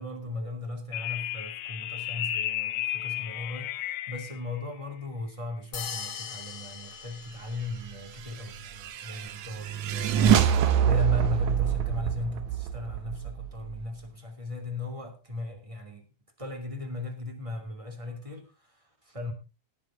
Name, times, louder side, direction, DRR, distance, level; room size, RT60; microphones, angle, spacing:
voice 1, 0.0-16.0 16.4-19.3, left 2 dB, 10° right, 2.2 m, -37 dB
sound 1, 0.9-4.4, left 12 dB, 70° left, 1.6 m, -33 dB
sound 2, 5.7-8.0, left 7 dB, 50° left, 1.7 m, -40 dB
sound 3, 8.2-13.8, right 9 dB, 75° right, 2.5 m, -26 dB
18.0 x 8.9 x 3.8 m
omnidirectional pair, 3.5 m